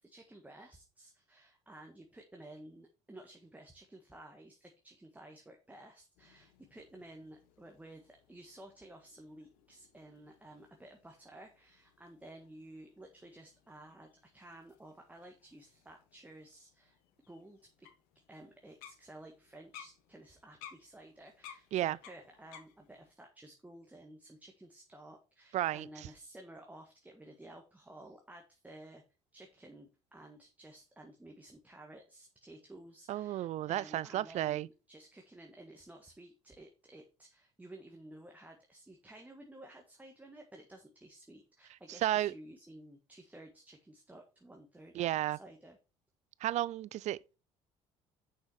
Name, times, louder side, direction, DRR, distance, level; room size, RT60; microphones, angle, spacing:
voice 1, 0.0-17.0 17.3-17.9 18.3-29.0 29.3-45.8, right 1 dB, 10° right, 1.6 m, -54 dB
sound 1, 6.1-23.1, left 9 dB, 75° left, 1.4 m, -59 dB
voice 2, 25.5-25.9 33.1-34.7 42.0-42.3 44.9-45.4 46.4-47.2, right 13 dB, 55° right, 0.4 m, -32 dB
6.5 x 6.1 x 4.8 m
hypercardioid pair, 65°, 14 cm